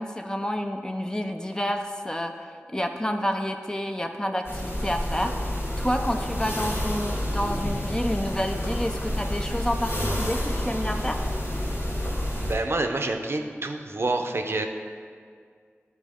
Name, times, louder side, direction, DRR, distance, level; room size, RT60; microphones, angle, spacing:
voice 1, 0.0-2.3 2.7-11.2, equal, 15° left, 5 dB, 0.5 m, -29 dB
sound 1, 4.4-12.5, left 1 dB, 65° left, 1.9 m, -29 dB
sound 2, 5.3-11.7, left 1 dB, 85° left, 1.0 m, -44 dB
voice 2, 12.5-14.7, right 2 dB, 65° right, 4 dB, 0.5 m, -27 dB
11.0 x 4.1 x 3.6 m, 2.1 s
wide cardioid pair, 65°, 5 cm